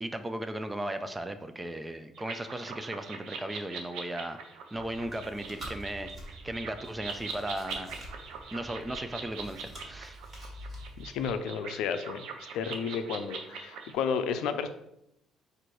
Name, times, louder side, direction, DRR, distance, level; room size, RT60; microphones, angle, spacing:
voice 1, 0.0-4.4 4.7-8.0 8.5-10.2, right 1 dB, 10° right, 9 dB, 0.3 m, -36 dB
sound 1, 2.2-13.9, right 5 dB, 75° right, 0.7 m, -42 dB
Chewing mastication, 4.7-11.3, right 1 dB, 25° right, 1.5 m, -47 dB
voice 2, 11.0-12.3 12.5-14.7, left 6 dB, 90° left, 9 dB, 0.4 m, -32 dB
4.4 x 2.6 x 4.7 m, 0.81 s
cardioid pair, 160°, 0 cm